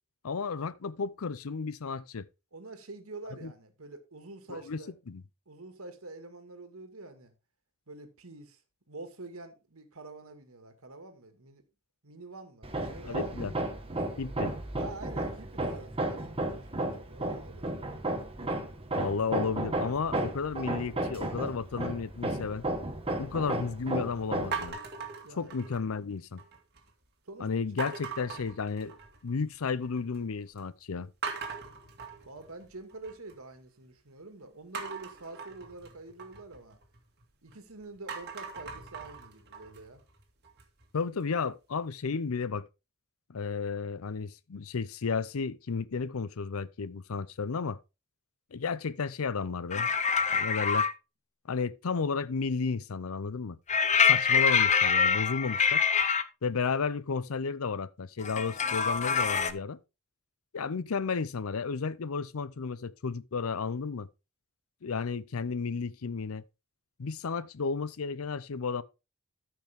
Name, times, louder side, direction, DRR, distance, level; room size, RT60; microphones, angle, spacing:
voice 1, 0.2-2.3 3.4-3.5 4.5-4.8 5.1-5.2 13.0-13.5 14.2-14.5 19.0-22.6 23.2-24.8 25.4-26.4 27.4-29.0 29.2-31.1 40.9-42.7 43.3-47.8 48.5-49.9 50.3-50.9 51.5-53.6 54.1-55.8 56.4-59.8 60.5-64.1 64.8-66.4 67.0-68.8, left 5 dB, 80° left, 0.6 m, -33 dB
voice 2, 2.5-4.9 5.5-7.3 7.9-8.6 8.9-11.6 12.0-13.4 14.8-17.7 25.2-25.5 27.3-27.5 32.3-36.8 37.4-40.0, right 2 dB, 80° right, 1.9 m, -46 dB
Hammer, 12.6-24.7, right 1 dB, 25° right, 1.4 m, -34 dB
sound 1, 24.5-26.0 26.4-26.9 27.8-29.3 29.6-30.2 30.6-30.7 31.2-33.3 34.7-37.5 37.9-40.8, right 5 dB, 50° right, 2.2 m, -41 dB
sound 2, 49.7-50.9 53.7-56.2 58.2-59.5, left 6 dB, 35° left, 0.7 m, -25 dB
13.5 x 5.9 x 3.6 m
head